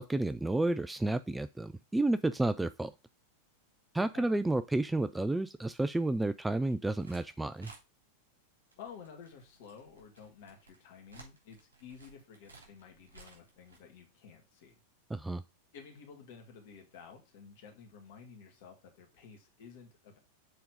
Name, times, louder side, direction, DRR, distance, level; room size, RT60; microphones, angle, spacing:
voice 1, 0.0-2.9 3.9-7.7 15.1-15.4, right 2 dB, 5° right, 0.3 m, -31 dB
sound 1, 6.6-7.3 7.6-7.8 8.7-13.8, right 2 dB, 70° right, 3.2 m, -57 dB
voice 2, 8.8-14.8 15.7-20.2, left 6 dB, 50° left, 2.1 m, -52 dB
6.8 x 3.9 x 5.0 m
figure-of-eight pair, 90°, 0 cm